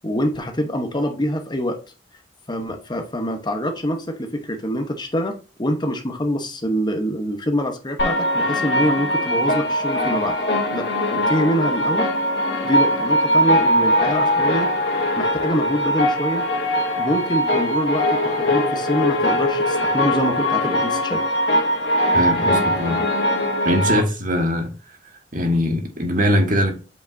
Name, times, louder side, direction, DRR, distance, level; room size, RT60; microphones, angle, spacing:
voice 1, 0.0-1.8 2.5-10.4 10.7-12.1 12.6-14.7 15.2-16.4 17.0-21.2, equal, 25° left, 0.9 m, -25 dB
sound 1, 8.0-24.0, equal, 70° left, 2.3 m, -21 dB
voice 2, 22.1-23.0 23.6-24.7 25.3-26.7, equal, 50° right, 1.6 m, -21 dB
7.9 x 5.1 x 2.6 m
head